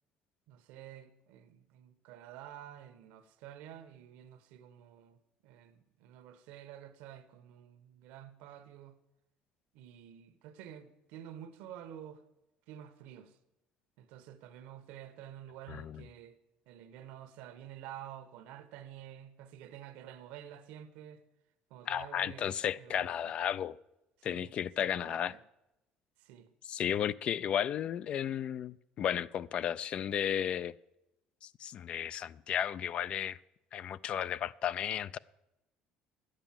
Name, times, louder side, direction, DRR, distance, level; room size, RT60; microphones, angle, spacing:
voice 1, 0.5-9.0 9.7-12.2 12.7-13.4 14.0-16.4 16.7-21.2 21.7-23.3 24.2-25.4 26.2-26.5, right 10 dB, 85° right, 1.1 m, -50 dB
voice 2, 15.7-16.0 21.9-23.8 24.2-25.3 26.7-30.7 31.4-33.4 33.7-35.2, left 9 dB, 45° left, 0.3 m, -34 dB
11.5 x 8.9 x 7.4 m
cardioid pair, 140°, 3 cm